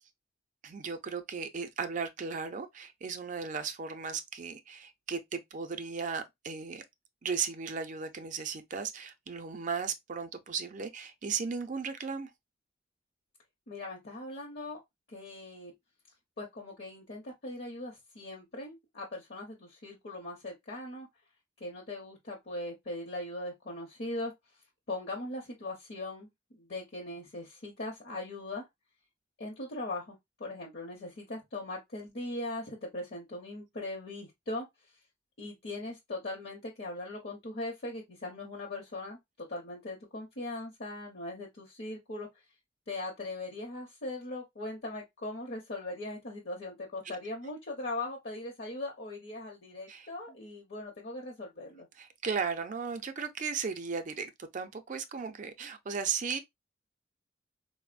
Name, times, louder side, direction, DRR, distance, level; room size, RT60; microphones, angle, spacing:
voice 1, 0.6-6.8 7.2-12.3 47.0-47.2 49.9-50.4 52.0-56.4, right 5 dB, 45° right, 0.4 m, -36 dB
voice 2, 13.7-14.8 15.1-15.7 16.4-21.1 21.6-24.3 24.9-26.3 26.5-28.6 29.4-34.7 35.4-42.3 42.9-51.9, left 2 dB, 60° left, 0.7 m, -40 dB
3.8 x 2.0 x 2.4 m
head